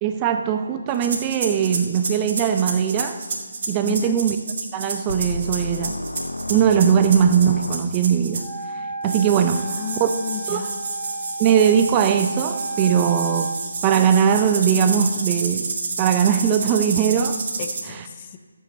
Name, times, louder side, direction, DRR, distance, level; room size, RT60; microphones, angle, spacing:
voice 1, 0.0-3.2 3.7-4.4 4.7-6.0 6.5-8.4 8.7-9.7 10.0-10.1 10.5-10.7 11.4-13.5 13.8-15.7 16.0-17.4 17.9-18.1, right 8 dB, 20° right, 7 dB, 0.5 m, -20 dB
sound 1, 0.9-8.6 9.0-17.8, right 4 dB, 45° right, 1.8 m, -30 dB
voice 2, 3.8-4.2 9.5-10.8 17.6-18.4, left 7 dB, 30° left, 7 dB, 0.9 m, -33 dB
sound 2, 5.1-8.3, left 1 dB, 75° left, 0.6 m, -31 dB
Wind instrument woodwind instrument, 8.3-13.6, right 3 dB, 5° left, 1.7 m, -32 dB
12.5 x 8.2 x 6.6 m, 1.5 s
figure-of-eight pair, 145°, 0 cm